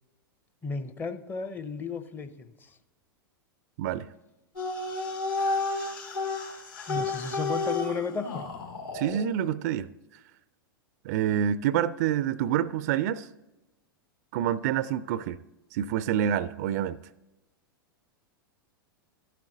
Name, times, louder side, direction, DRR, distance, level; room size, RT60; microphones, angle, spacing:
voice 1, 0.6-2.8 6.9-8.5, left 5 dB, 15° left, 11 dB, 0.6 m, -34 dB
sound 1, 4.6-9.3, left 3 dB, 70° left, 2.4 m, -31 dB
voice 2, 8.9-9.9 11.0-13.3 14.3-15.4 15.7-17.0, right 10 dB, 45° right, 18 dB, 0.4 m, -27 dB
12.5 x 7.6 x 3.9 m, 1.0 s
figure-of-eight pair, 95°, 12 cm